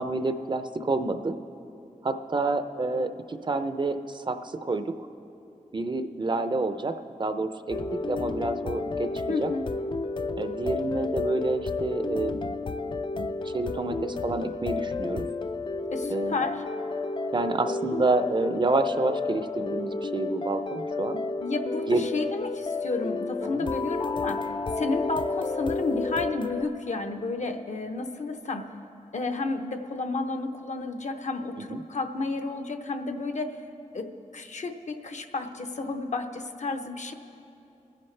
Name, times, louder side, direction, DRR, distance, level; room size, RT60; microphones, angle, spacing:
voice 1, 0.0-1.4 2.0-5.1 5.7-9.1 9.4-9.5 10.4-12.5 13.1-15.2 16.1-16.3 17.3-21.2 21.9-22.0 23.5-23.6 31.7-31.8, right 3 dB, 35° right, 9 dB, 0.5 m, -28 dB
sound 1, 7.7-26.6, left 3 dB, 40° left, 0.4 m, -31 dB
voice 2, 9.3-9.6 15.9-16.6 21.4-28.7 29.1-33.6 33.9-37.1, left 3 dB, 65° left, 7 dB, 0.8 m, -31 dB
25.5 x 10.0 x 3.3 m, 2.8 s
wide cardioid pair, 125°, 13 cm